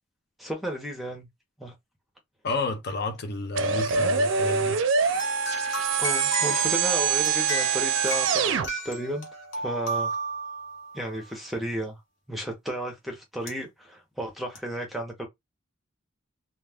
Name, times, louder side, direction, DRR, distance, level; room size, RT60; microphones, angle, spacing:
voice 1, 0.4-1.3 1.6-1.7 6.0-9.3 9.5-10.1 10.9-12.0 12.3-15.3, right 1 dB, ahead, 0.7 m, -33 dB
voice 2, 2.4-4.8, left 2 dB, 60° left, 0.6 m, -31 dB
sound 1, 3.6-8.7, right 6 dB, 80° right, 0.4 m, -24 dB
sound 2, 5.2-11.1 13.5-13.6 14.6-14.7, equal, 85° left, 1.1 m, -33 dB
2.4 x 2.3 x 3.4 m
head